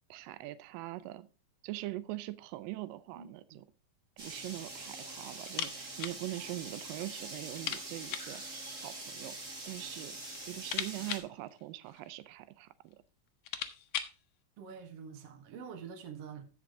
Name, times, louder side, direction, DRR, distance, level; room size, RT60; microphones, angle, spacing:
voice 1, 0.1-1.3 1.6-3.7 4.2-9.4 9.7-10.2 10.5-13.0, right 16 dB, 80° right, 2.3 m, -42 dB
voice 2, 3.1-3.6 11.0-11.1 14.6-16.5, right 6 dB, 55° right, 1.8 m, -47 dB
sound 1, 4.2-11.2, right 2 dB, 25° right, 2.0 m, -44 dB
sound 2, 5.4-6.2 6.5-6.6 6.9-7.0 7.5-8.4 9.3-9.9 10.2-12.2 12.9-13.0 13.3-14.2, left 10 dB, 70° left, 2.0 m, -40 dB
14.5 x 5.2 x 3.7 m
omnidirectional pair, 4.0 m